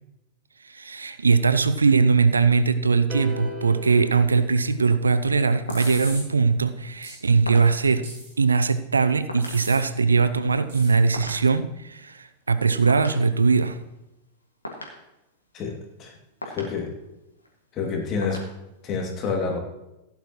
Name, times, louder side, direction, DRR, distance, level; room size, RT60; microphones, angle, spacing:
voice 1, 0.7-8.1 8.4-13.8, right 4 dB, 75° right, 13 dB, 0.5 m, -21 dB
sound 1, 3.1-5.4, equal, 20° right, 1.8 m, -37 dB
sound 2, 3.8-19.0, left 1 dB, 80° left, 2.1 m, -43 dB
sound 3, 5.7-6.2 7.0-7.2 8.0-8.5 9.4-9.8 10.7-10.9, right 2 dB, 60° right, 3.9 m, -38 dB
voice 2, 16.4-16.9 17.7-18.4 18.8-19.6, left 5 dB, 35° left, 0 dB, 2.6 m, -28 dB
16.0 x 10.5 x 3.1 m, 0.92 s
figure-of-eight pair, 90°, 0 cm